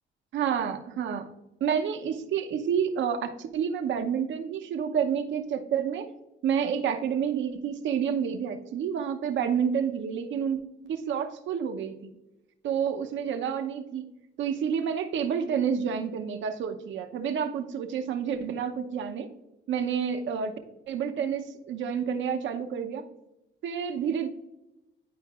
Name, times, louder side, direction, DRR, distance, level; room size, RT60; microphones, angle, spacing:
voice 1, 0.3-1.3 1.6-6.1 6.4-10.6 10.8-12.0 12.6-14.1 14.4-19.3 19.7-20.5 20.9-23.0 23.6-24.3, right 7 dB, 75° right, 7 dB, 0.8 m, -29 dB
11.0 x 4.6 x 2.4 m, 0.96 s
cardioid pair, 90°, 20 cm